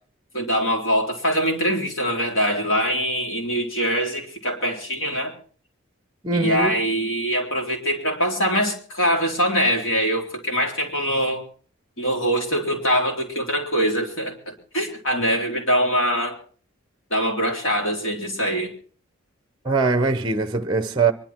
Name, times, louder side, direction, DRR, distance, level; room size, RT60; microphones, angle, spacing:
voice 1, 0.3-5.3 6.3-11.4 12.0-16.4 17.1-18.7, equal, 65° left, 3.8 m, -23 dB
voice 2, 6.2-6.7 19.6-21.1, right 3 dB, 20° right, 0.7 m, -21 dB
24.0 x 11.5 x 4.4 m
head